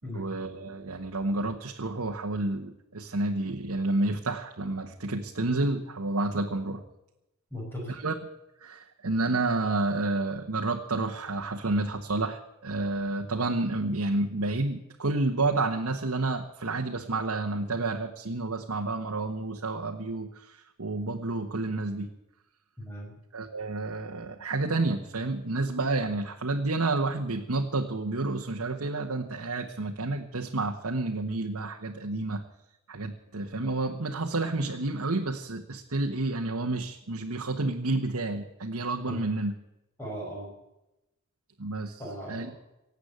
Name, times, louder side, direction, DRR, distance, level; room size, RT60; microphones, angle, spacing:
voice 1, 0.1-6.8 8.0-8.2 8.6-22.1 23.3-32.4 32.9-39.5 41.6-42.0 42.3-42.5, right 2 dB, 85° right, 2 dB, 1.2 m, -30 dB
voice 2, 7.5-8.0 22.8-23.2 39.1-39.3 40.0-40.5 42.0-42.5, equal, 10° left, -2 dB, 5.5 m, -38 dB
18.0 x 8.3 x 8.1 m, 0.92 s
head